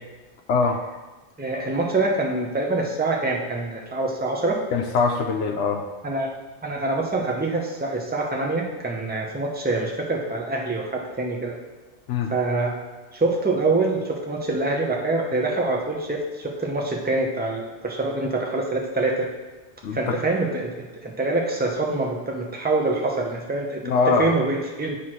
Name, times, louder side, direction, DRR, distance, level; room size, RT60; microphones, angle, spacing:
voice 1, 0.5-0.8 4.7-5.8 12.1-12.3 19.8-20.2 23.8-24.3, left 4 dB, 85° left, 1 dB, 0.9 m, -22 dB
voice 2, 1.4-4.6 6.0-6.3 6.6-11.6 12.3-12.7 13.1-19.3 19.9-25.0, right 2 dB, 10° right, -1 dB, 0.8 m, -25 dB
8.1 x 3.1 x 6.0 m, 1.2 s
omnidirectional pair, 1.2 m